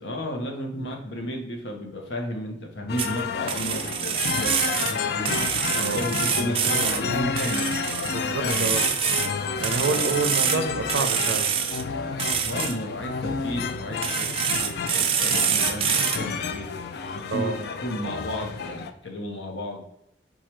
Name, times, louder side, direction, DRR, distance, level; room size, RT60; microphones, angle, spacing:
voice 1, 0.0-5.3 5.7-7.6 8.1-8.7 9.7-10.5 12.4-16.7 17.3-19.8, equal, 75° left, 2 dB, 0.9 m, -33 dB
sound 1, 2.9-18.9, left 5 dB, 60° left, 0.4 m, -30 dB
sound 2, 3.0-3.2 3.5-5.0 5.2-7.0 7.4-9.3 9.6-10.6 10.9-11.8 12.2-12.7 14.0-16.2, right 8 dB, 30° right, 0.4 m, -26 dB
voice 2, 8.1-8.9 9.6-11.6 17.3-17.6, right 4 dB, 85° right, 8 dB, 0.5 m, -28 dB
4.7 x 2.4 x 4.4 m, 0.80 s
head